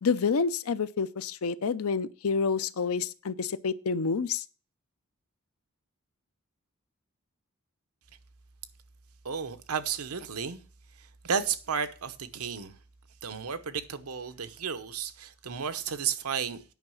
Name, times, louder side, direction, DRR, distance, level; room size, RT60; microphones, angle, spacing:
voice 1, 0.0-4.4, left 5 dB, 75° left, 0.5 m, -28 dB
voice 2, 9.2-10.6 11.0-12.8 13.2-16.6, right 7 dB, 85° right, 0.9 m, -33 dB
9.4 x 5.6 x 6.9 m
head